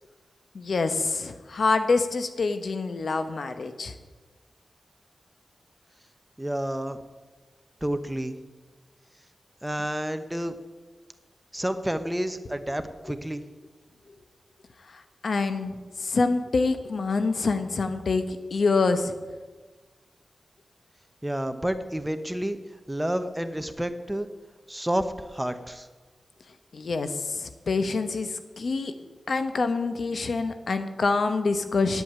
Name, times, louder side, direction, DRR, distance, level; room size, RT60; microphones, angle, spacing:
voice 1, 0.5-3.9 14.9-19.1 26.7-28.9 29.3-32.0, left 4 dB, 70° left, 9 dB, 1.0 m, -26 dB
voice 2, 6.4-7.0 7.8-8.4 9.6-10.5 11.5-13.4 21.2-22.6 22.9-24.3 24.7-25.9, right 1 dB, 10° right, 9 dB, 1.0 m, -29 dB
9.3 x 8.2 x 8.9 m, 1.3 s
cardioid pair, 60°, 0 cm